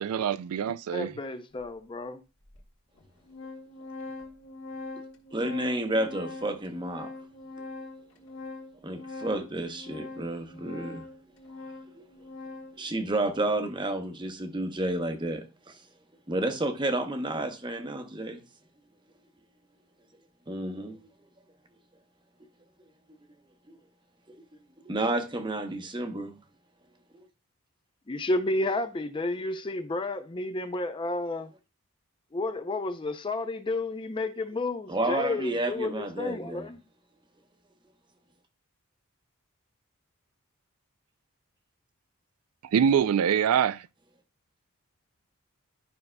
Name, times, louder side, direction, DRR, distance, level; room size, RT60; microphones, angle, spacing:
voice 1, 0.0-1.2 42.6-43.9, right 8 dB, 80° right, 0.3 m, -25 dB
voice 2, 0.9-2.2 28.1-31.5 32.3-36.8, left 2 dB, 20° left, 0.4 m, -31 dB
Organ, 1.6-1.7 2.5-2.6 3.0-12.9, left 3 dB, 65° left, 1.5 m, -43 dB
voice 3, 5.3-7.1 8.8-11.1 12.0-12.1 12.8-15.8 16.3-18.4 20.5-21.0 23.7-23.8 24.3-24.4 24.8-26.4 34.9-36.7, right 1 dB, 20° right, 0.8 m, -31 dB
12.0 x 5.4 x 2.2 m
head